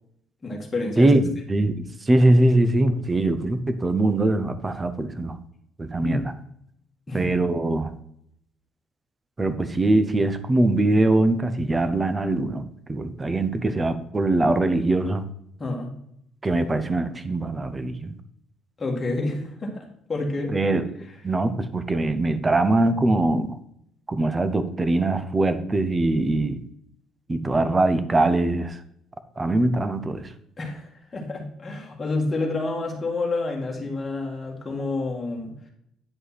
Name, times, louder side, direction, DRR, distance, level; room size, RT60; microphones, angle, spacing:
voice 1, 0.4-1.1 5.9-6.3 7.1-7.3 15.6-15.9 18.8-20.5 30.6-35.5, left 2 dB, 15° left, -1 dB, 1.9 m, -29 dB
voice 2, 1.0-5.4 5.8-6.2 7.1-7.9 9.4-15.2 16.4-18.1 20.5-20.8 21.2-23.6 24.1-26.6 27.3-28.8 29.4-30.3, right 2 dB, 15° right, 11 dB, 0.7 m, -22 dB
9.4 x 5.3 x 4.2 m, 0.72 s
cardioid pair, 155°, 0 cm